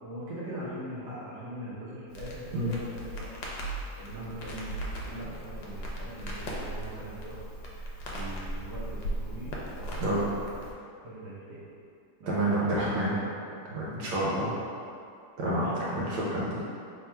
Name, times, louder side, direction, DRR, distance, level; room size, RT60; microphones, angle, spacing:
voice 1, 0.0-3.3 4.0-7.4 7.8-10.6 11.0-11.6 12.2-13.5 14.5-14.7 15.4-15.7, right 1 dB, 65° right, -9 dB, 1.2 m, -42 dB
Crackle, 2.1-10.7, right 1 dB, 75° left, 1.2 m, -38 dB
voice 2, 12.3-13.1 13.7-14.6 15.4-16.7, right 1 dB, 80° right, -6 dB, 1.5 m, -28 dB
3.5 x 2.3 x 4.2 m, 2.4 s
omnidirectional pair, 2.3 m